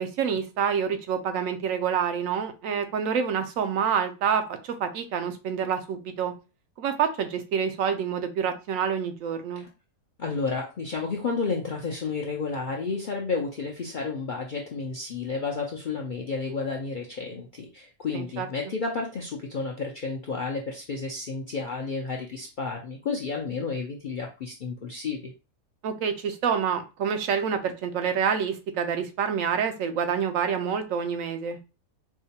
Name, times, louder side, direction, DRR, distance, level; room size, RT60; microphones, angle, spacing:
voice 1, 0.0-6.3 6.8-9.6 18.1-18.5 25.8-31.6, right 7 dB, 75° right, 8 dB, 0.9 m, -27 dB
voice 2, 10.2-25.3, left 4 dB, 60° left, -1 dB, 0.5 m, -31 dB
4.6 x 2.1 x 2.8 m, 0.30 s
omnidirectional pair, 1.5 m